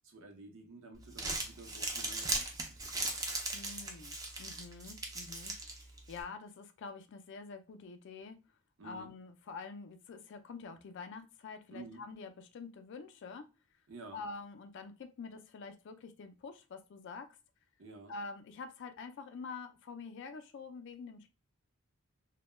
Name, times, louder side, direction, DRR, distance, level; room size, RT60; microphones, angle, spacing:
voice 1, 0.0-2.9 8.8-9.1 11.7-12.0 13.9-14.2 17.8-18.1, right 2 dB, 60° right, 3 dB, 0.6 m, -51 dB
Crumpling crinkling, 1.0-6.2, right 2 dB, 15° right, 0.4 m, -39 dB
voice 2, 3.5-8.4 8.8-13.5 14.1-17.3 18.1-21.3, left 4 dB, 55° left, 8 dB, 0.3 m, -47 dB
2.1 x 2.1 x 3.1 m, 0.31 s
head